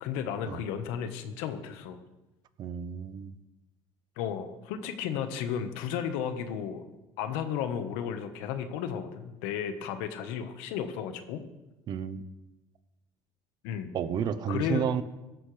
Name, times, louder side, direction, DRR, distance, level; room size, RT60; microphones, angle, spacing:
voice 1, 0.0-2.0 4.2-6.8 7.2-11.4 13.6-13.9 14.5-14.9, left 8 dB, 80° left, 8 dB, 1.4 m, -33 dB
voice 2, 2.6-3.3 11.9-12.2 13.9-15.0, right 8 dB, 50° right, 13 dB, 0.9 m, -31 dB
17.0 x 13.5 x 3.4 m, 1.0 s
cardioid pair, 120°, 9 cm